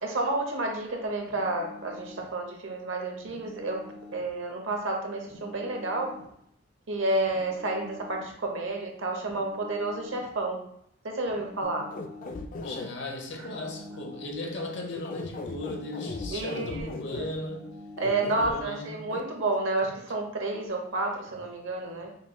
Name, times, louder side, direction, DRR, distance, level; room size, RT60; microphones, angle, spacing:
voice 1, 0.0-3.8 4.1-6.2 6.9-10.6 11.0-11.9 13.4-13.5 16.3-16.9 17.2-17.3 18.0-22.1, right 2 dB, 70° right, 2 dB, 0.8 m, -30 dB
sound 1, 1.2-2.4 3.2-4.4 5.3-6.4 7.3-8.4 9.3-10.4 11.3-12.4 13.3-14.4 15.3-16.4 17.3-18.4, left 2 dB, 35° right, 0.9 m, -47 dB
sound 2, 11.6-12.9 14.9-17.2 18.0-18.5 19.1-19.2, left 3 dB, 40° left, 0.3 m, -37 dB
voice 2, 12.6-17.7 18.3-19.1, left 1 dB, 60° left, 1 dB, 0.8 m, -37 dB
5.3 x 3.0 x 2.2 m, 0.73 s
head